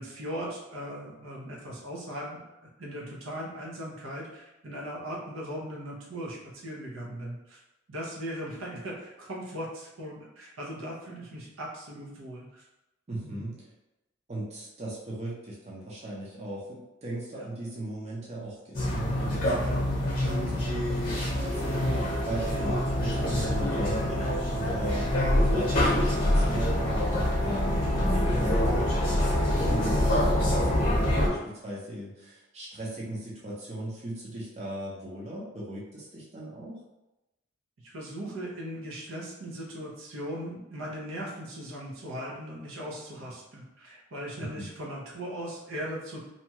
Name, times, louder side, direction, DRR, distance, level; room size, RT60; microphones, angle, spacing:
voice 1, 0.0-7.6 7.9-12.6 13.2-13.5 17.3-17.5 30.3-30.5 37.8-46.2, equal, 80° right, -4 dB, 0.7 m, -39 dB
voice 2, 13.1-13.6 14.3-29.3 29.6-36.8 44.4-44.7, right 1 dB, 30° right, -6 dB, 0.6 m, -38 dB
sound 1, 18.7-31.3, left 1 dB, 45° left, 0.8 m, -26 dB
2.7 x 2.3 x 2.8 m, 0.97 s
head